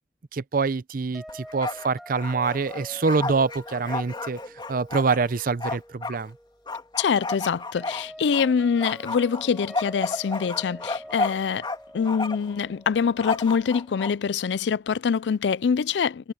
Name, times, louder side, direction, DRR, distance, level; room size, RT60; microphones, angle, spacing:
voice 1, 0.3-4.4 4.7-6.3, right 4 dB, 55° right, 0.6 m, -25 dB
sound 1, 1.1-14.0, equal, ahead, 6.6 m, -45 dB
Bark, 1.3-1.9 2.1-6.2 6.7-8.5 8.8-11.8 12.0-12.5 13.2-14.1, left 3 dB, 25° left, 2.2 m, -32 dB
voice 2, 7.0-11.7 11.9-16.3, left 6 dB, 80° left, 0.4 m, -24 dB
head